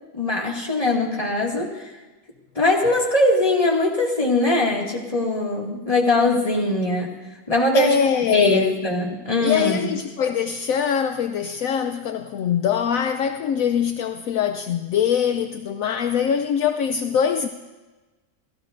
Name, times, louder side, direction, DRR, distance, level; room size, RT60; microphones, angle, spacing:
voice 1, 0.1-1.9 2.6-7.2 7.5-8.0 8.3-9.9, left 2 dB, 25° left, 2.3 m, -21 dB
voice 2, 7.7-8.7 9.4-17.5, left 8 dB, 70° left, 1.0 m, -23 dB
30.0 x 14.5 x 2.6 m
omnidirectional pair, 1.5 m